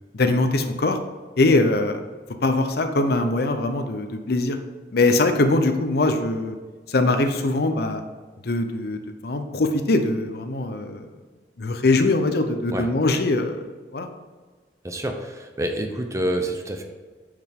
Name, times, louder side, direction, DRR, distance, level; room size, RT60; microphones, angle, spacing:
voice 1, 0.1-1.0 1.4-2.0 2.4-4.6 4.9-6.6 6.9-8.0 8.4-11.1 11.6-13.7 13.9-14.1, left 2 dB, 60° left, 7 dB, 0.7 m, -22 dB
voice 2, 14.8-16.8, right 1 dB, 15° right, 4 dB, 0.7 m, -27 dB
9.4 x 4.9 x 3.6 m, 1.4 s
head